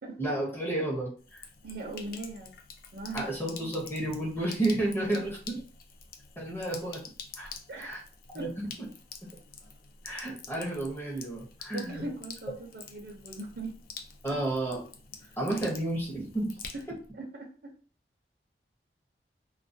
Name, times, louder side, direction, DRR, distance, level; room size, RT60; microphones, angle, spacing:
voice 1, 0.2-1.5 3.1-5.6 6.4-7.0 7.3-7.5 7.8-8.0 8.3-8.7 10.0-12.0 14.2-14.8 15.4-16.6, right 1 dB, 10° left, 0.7 m, -31 dB
Sink (filling or washing), 1.2-17.1, left 6 dB, 55° left, 0.3 m, -47 dB
voice 2, 1.6-2.5 2.9-3.3 5.1-5.2 7.7-8.0 8.3-8.5 11.7-13.8 14.3-14.4 15.2-15.4 16.7-16.8 17.2-17.7, right 2 dB, 55° right, 0.5 m, -40 dB
2.2 x 2.2 x 2.6 m
head